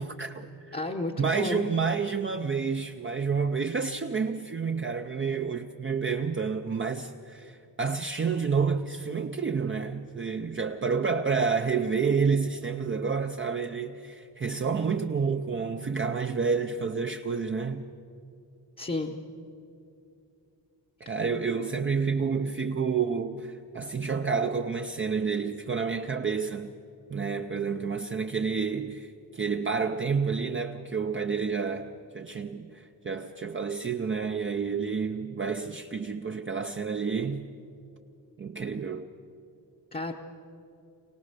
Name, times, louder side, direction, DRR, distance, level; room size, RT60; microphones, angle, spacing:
voice 1, 0.0-0.8 1.2-17.9 21.0-26.7 27.1-37.5 38.4-39.1, right 5 dB, 30° right, 0.5 m, -29 dB
voice 2, 0.7-1.7 18.8-19.2 39.9-40.1, left 2 dB, 20° left, 0.8 m, -32 dB
24.5 x 18.5 x 6.7 m
wide cardioid pair, 180°, 41 cm